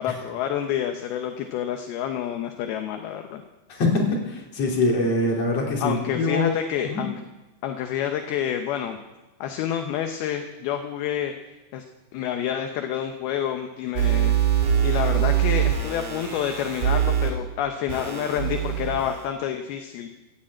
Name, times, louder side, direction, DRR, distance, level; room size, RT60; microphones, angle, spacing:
voice 1, 0.0-3.4 5.8-7.2 7.6-9.0 9.4-11.3 11.7-11.8 12.1-14.4 14.8-20.1, left 9 dB, 75° left, 5 dB, 2.5 m, -28 dB
voice 2, 3.8-4.2 4.5-6.6 6.9-7.0, left 2 dB, 40° left, -1 dB, 3.5 m, -23 dB
sound 1, 14.0-17.3 17.9-19.2, right 10 dB, 60° right, 4.5 m, -23 dB
15.5 x 9.0 x 8.7 m, 1.1 s
omnidirectional pair, 5.2 m